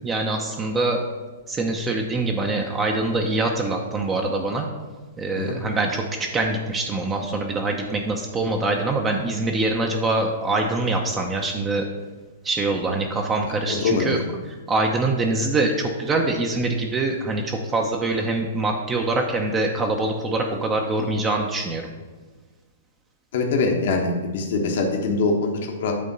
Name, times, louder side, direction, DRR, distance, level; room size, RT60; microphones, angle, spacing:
voice 1, 0.0-1.0 1.5-4.7 5.2-11.8 12.4-14.2 14.7-21.8, right 2 dB, 20° right, 2 dB, 0.8 m, -24 dB
voice 2, 13.7-14.2 23.3-25.9, left 3 dB, 55° left, 2 dB, 1.1 m, -23 dB
8.5 x 3.7 x 5.4 m, 1.3 s
figure-of-eight pair, 110°, 0 cm